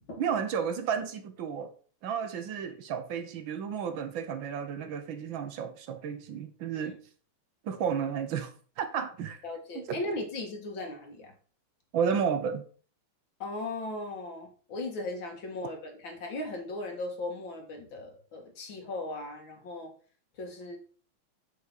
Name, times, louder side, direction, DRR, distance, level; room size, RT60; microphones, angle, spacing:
voice 1, 0.2-1.7 2.0-7.0 7.6-8.5 8.8-9.4 9.7-10.0 11.9-12.6, right 7 dB, 70° right, 1.6 m, -32 dB
voice 2, 9.4-11.3 13.4-19.9 20.4-20.8, left 2 dB, 70° left, 2.4 m, -37 dB
7.4 x 6.8 x 4.1 m
omnidirectional pair, 2.3 m